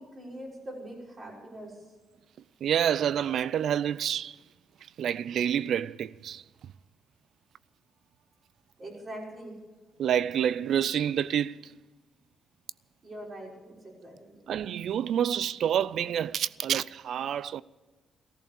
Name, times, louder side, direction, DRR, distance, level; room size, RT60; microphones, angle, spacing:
voice 1, 0.0-1.7 8.8-9.6 13.0-14.4, right 1 dB, 40° right, 5.8 m, -43 dB
voice 2, 2.6-4.4 5.0-6.4 10.0-11.7 14.5-17.6, right 9 dB, 70° right, 0.4 m, -28 dB
14.5 x 14.0 x 6.9 m
cardioid pair, 90°, 0 cm